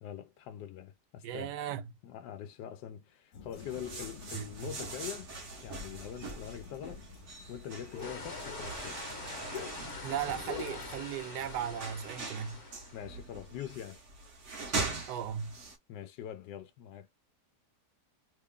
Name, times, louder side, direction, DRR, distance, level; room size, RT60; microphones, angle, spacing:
voice 1, 0.0-1.6 2.0-5.3 5.6-7.0 7.5-9.0 12.9-14.0 15.9-17.1, left 10 dB, 90° left, 1.2 m, -43 dB
voice 2, 1.2-1.9 4.3-4.7 10.0-12.6 15.1-15.6, right 9 dB, 80° right, 1.2 m, -37 dB
sound 1, 3.3-11.0, left 5 dB, 70° left, 1.2 m, -48 dB
sound 2, 3.5-15.8, right 3 dB, 50° right, 1.2 m, -42 dB
sound 3, 8.0-13.1, left 3 dB, 45° left, 1.3 m, -44 dB
3.3 x 2.3 x 3.5 m
omnidirectional pair, 1.8 m